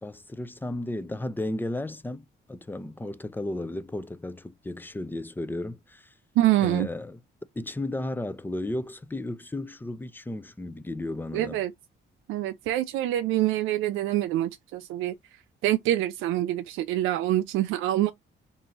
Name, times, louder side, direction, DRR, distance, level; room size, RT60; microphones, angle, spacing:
voice 1, 0.0-6.1 6.6-7.2 7.6-11.6, left 1 dB, 10° left, 0.4 m, -34 dB
voice 2, 6.4-6.9 11.3-11.7 12.3-15.1 15.6-18.1, right 14 dB, 90° right, 0.4 m, -25 dB
2.8 x 2.7 x 4.1 m
cardioid pair, 90°, 20 cm